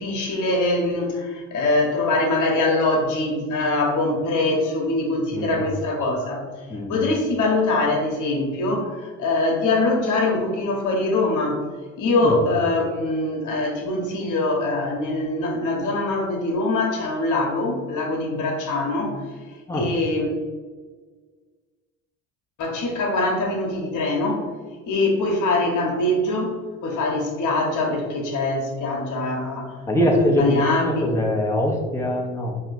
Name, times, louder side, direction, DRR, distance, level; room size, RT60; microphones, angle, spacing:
voice 1, 0.0-6.4 6.9-11.6 12.0-19.2 19.7-20.4 22.6-24.4 24.9-29.8 30.1-31.0, left 2 dB, 55° left, 0 dB, 1.2 m, -23 dB
voice 2, 29.9-32.6, equal, 10° left, -2 dB, 1.0 m, -22 dB
4.3 x 2.9 x 4.1 m, 1.5 s
hypercardioid pair, 70°, 36 cm